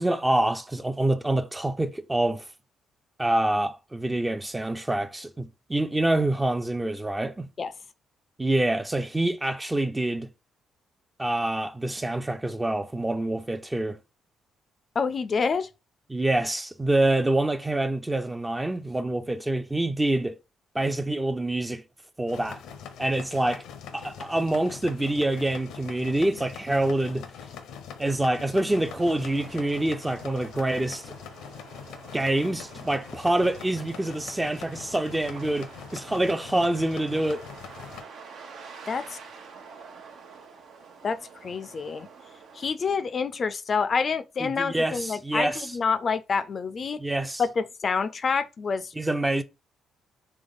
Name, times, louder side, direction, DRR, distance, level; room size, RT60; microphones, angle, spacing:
voice 1, 0.0-2.4 3.2-7.5 8.4-10.3 11.2-14.0 16.1-20.4 20.7-21.8 22.2-22.6 23.0-23.6 23.9-27.2 28.0-31.1 32.1-37.4 44.4-45.7 47.0-47.4 49.0-49.4, right 1 dB, 15° right, 0.5 m, -26 dB
voice 2, 15.0-15.7 38.9-39.2 41.0-42.1 42.5-47.0 47.4-48.9, left 5 dB, 45° left, 0.4 m, -27 dB
sound 1, 22.3-38.0, left 7 dB, 85° left, 0.7 m, -43 dB
sound 2, 28.7-42.7, right 5 dB, 75° right, 0.9 m, -47 dB
3.4 x 3.3 x 4.0 m
cardioid pair, 90°, 0 cm